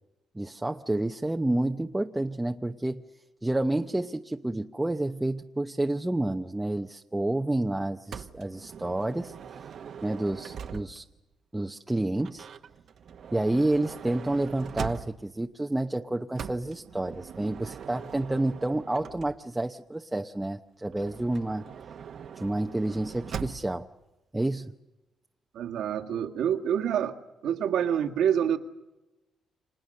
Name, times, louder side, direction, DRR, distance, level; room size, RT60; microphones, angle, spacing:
voice 1, 0.3-3.0 3.4-9.3 10.0-11.0 11.5-12.5 13.3-21.7 22.4-23.9 24.3-24.7, right 1 dB, 10° right, 3 dB, 0.8 m, -29 dB
Motor vehicle (road) / Sliding door, 8.1-11.2 12.1-15.4 16.3-19.7 20.9-23.8, right 7 dB, 60° right, 1.2 m, -42 dB
voice 2, 25.5-27.2 27.4-28.6, right 9 dB, 80° right, 6 dB, 1.8 m, -27 dB
29.5 x 25.5 x 6.6 m, 1.0 s
cardioid pair, 90°, 0 cm